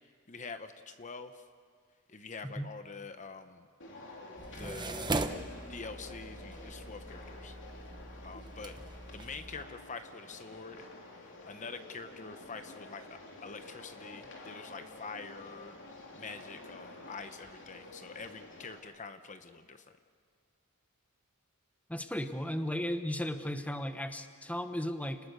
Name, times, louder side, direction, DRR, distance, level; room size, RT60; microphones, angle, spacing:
voice 1, 0.3-1.4 2.1-3.7 4.6-5.2 5.7-7.6 8.2-8.8 9.1-10.9 11.1-13.0 13.4-15.8 16.1-19.9, left 4 dB, 35° left, 9 dB, 0.9 m, -45 dB
sound 1, 3.8-18.8, left 2 dB, 60° left, 3.4 m, -50 dB
sound 2, 4.4-9.7, right 2 dB, 20° right, 0.9 m, -40 dB
voice 2, 21.9-25.2, equal, 5° left, 8 dB, 1.0 m, -35 dB
29.5 x 20.0 x 6.8 m, 2.1 s
head